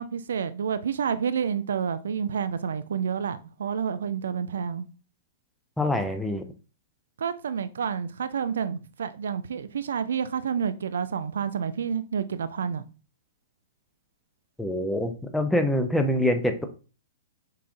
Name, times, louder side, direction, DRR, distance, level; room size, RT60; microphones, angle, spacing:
voice 1, 0.0-4.8 7.2-12.8, right 7 dB, 65° right, 0.3 m, -29 dB
voice 2, 5.8-6.4 14.6-16.7, left 1 dB, 5° left, 0.6 m, -25 dB
5.5 x 3.8 x 2.5 m
figure-of-eight pair, 110°, 0 cm